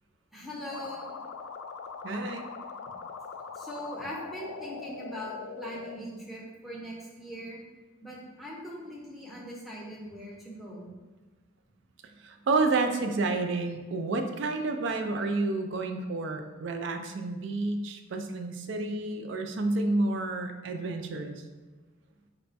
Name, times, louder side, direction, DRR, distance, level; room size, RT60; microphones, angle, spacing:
voice 1, 0.3-1.1 3.5-7.6 8.0-10.9, equal, ahead, -5 dB, 0.7 m, -41 dB
sound 1, 0.7-6.0, left 5 dB, 85° left, 0.3 m, -41 dB
voice 2, 2.0-2.5 12.2-21.4, right 3 dB, 60° right, 6 dB, 0.4 m, -30 dB
4.1 x 2.2 x 4.1 m, 1.3 s
head